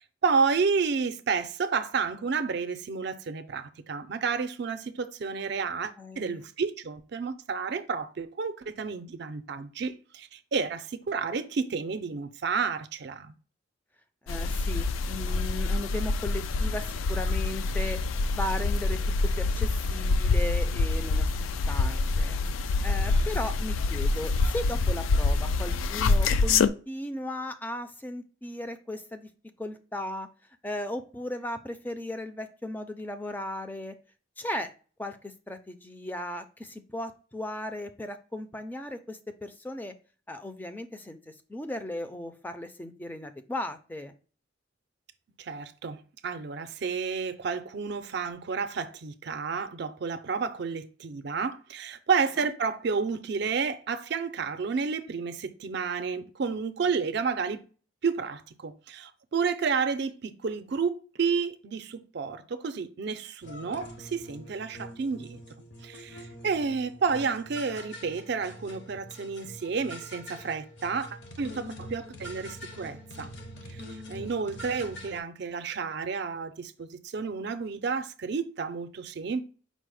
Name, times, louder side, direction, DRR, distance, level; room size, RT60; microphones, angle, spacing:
voice 1, 0.0-13.3 45.4-57.6 58.0-65.4 65.8-73.3 73.7-73.8 74.1-79.4, right 5 dB, 55° right, 0.4 m, -31 dB
voice 2, 6.0-6.5 14.2-18.0 18.3-19.0 19.4-22.4 22.8-29.3 29.6-30.3 30.6-34.0 34.4-34.7 35.0-39.9 40.3-44.1 52.4-52.5, left 1 dB, 10° left, 0.4 m, -36 dB
sound 1, 14.3-26.7, left 3 dB, 85° left, 0.3 m, -26 dB
sound 2, 63.4-75.2, equal, 60° left, 0.7 m, -44 dB
5.2 x 2.0 x 4.7 m
head